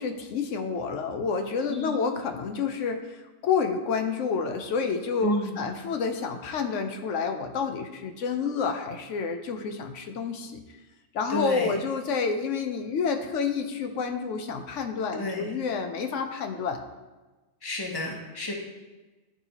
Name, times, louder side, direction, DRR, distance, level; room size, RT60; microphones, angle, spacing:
voice 1, 0.0-10.6 11.1-16.8, left 5 dB, 80° left, 6 dB, 1.0 m, -29 dB
voice 2, 1.7-2.0 5.2-5.7 11.3-11.8 15.1-15.4 17.6-18.5, left 1 dB, 20° left, 0 dB, 1.0 m, -31 dB
11.5 x 4.1 x 2.9 m, 1.2 s
omnidirectional pair, 1.2 m